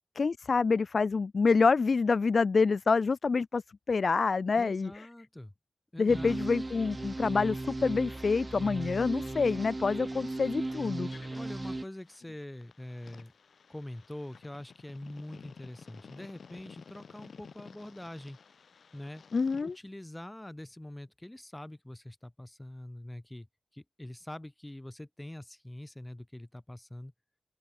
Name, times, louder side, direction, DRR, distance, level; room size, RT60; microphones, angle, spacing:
voice 1, 0.2-3.6 3.9-5.1 6.0-11.1 19.3-19.7, left 4 dB, 65° left, 0.5 m, -27 dB
voice 2, 4.5-5.5 5.9-6.4 11.3-13.3 13.7-18.4 18.9-19.2 19.6-23.5 23.7-27.1, left 1 dB, 15° left, 4.8 m, -44 dB
sound 1, 6.1-11.8, right 2 dB, 30° right, 3.5 m, -36 dB
sound 2, 11.1-19.8, left 6 dB, 80° left, 3.7 m, -53 dB
open air
cardioid pair, 60°, 0 cm